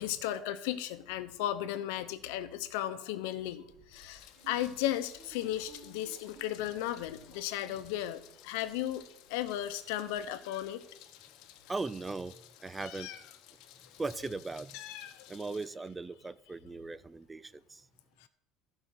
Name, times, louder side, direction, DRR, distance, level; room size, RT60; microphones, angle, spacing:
voice 1, 0.0-9.0 9.3-10.8 15.2-15.5 18.2-18.3, left 12 dB, 85° left, 11 dB, 0.9 m, -35 dB
sound 1, 3.7-8.2 8.5-9.3 9.7-9.8 10.0-10.2, right 5 dB, 45° right, 2.4 m, -58 dB
Meow, 3.9-15.7, left 12 dB, 60° left, 0.9 m, -53 dB
voice 2, 11.7-13.1 14.0-17.9, right 3 dB, 10° right, 17 dB, 0.3 m, -39 dB
14.0 x 5.3 x 6.4 m, 0.81 s
cardioid pair, 165°, 0 cm